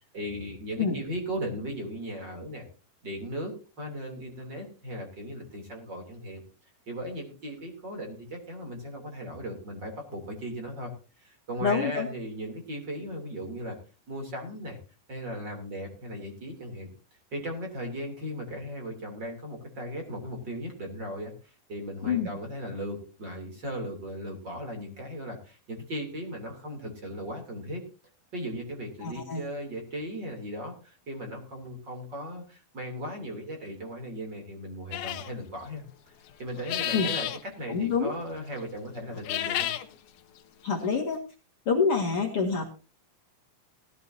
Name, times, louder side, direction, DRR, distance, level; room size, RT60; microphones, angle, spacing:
voice 1, 0.1-2.7 3.0-6.4 6.9-10.9 11.2-13.8 14.1-14.8 15.1-16.9 17.3-27.8 28.3-35.8 36.4-39.7, equal, 30° right, 3 dB, 3.4 m, -37 dB
voice 2, 11.6-12.1 22.0-22.3 29.0-29.4 36.9-37.1 37.7-38.1 40.6-41.2 41.7-42.7, left 5 dB, 45° left, 0 dB, 2.5 m, -26 dB
sound 1, 34.9-35.3 36.6-37.4 39.1-39.9, left 12 dB, 80° left, 2.8 m, -31 dB
18.0 x 13.0 x 2.8 m, 0.33 s
omnidirectional pair, 4.3 m